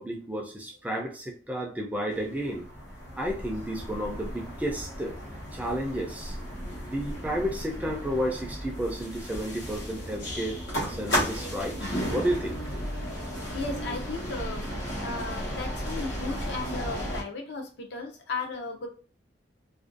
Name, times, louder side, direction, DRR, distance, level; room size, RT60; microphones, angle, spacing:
voice 1, 0.0-2.7 3.2-5.2 5.5-6.4 6.8-10.6 10.9-12.6, equal, 10° right, 0 dB, 0.3 m, -32 dB
sound 1, 2.1-17.2, equal, 90° left, 0.9 m, -34 dB
voice 2, 13.5-14.7 15.0-18.9, left 3 dB, 65° left, 3 dB, 0.5 m, -35 dB
2.5 x 2.2 x 2.5 m, 0.37 s
head